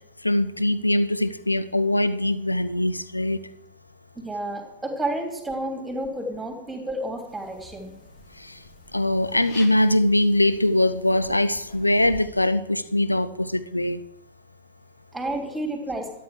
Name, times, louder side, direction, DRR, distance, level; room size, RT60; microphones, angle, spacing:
voice 1, 0.2-3.4 8.4-8.5 8.9-14.0, left 1 dB, 85° left, 0.7 m, -22 dB
voice 2, 4.1-7.9 15.1-16.1, right 1 dB, 5° right, 3.5 m, -30 dB
sound 1, 7.3-12.3, left 2 dB, 45° left, 3.0 m, -47 dB
13.0 x 9.3 x 6.8 m
figure-of-eight pair, 90°, 0 cm